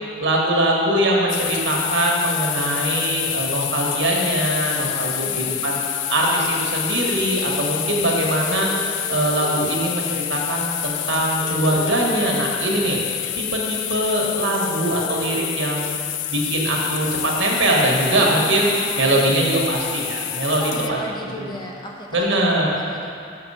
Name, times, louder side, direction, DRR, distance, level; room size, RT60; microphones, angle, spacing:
voice 1, 0.2-5.8 6.1-8.7 9.1-13.0 13.4-15.9 16.3-21.0 21.4-21.5 22.1-22.7, right 1 dB, 80° right, -2 dB, 1.2 m, -22 dB
sound 1, 1.3-20.9, left 12 dB, 75° left, 0.3 m, -27 dB
voice 2, 4.8-5.6 18.1-19.4 20.6-23.1, equal, 25° left, -1 dB, 0.6 m, -35 dB
sound 2, 6.3-6.4 8.4-9.6 11.4-12.4 14.4-15.4, right 5 dB, 10° right, 1.5 m, -35 dB
5.9 x 5.5 x 5.4 m, 2.4 s
head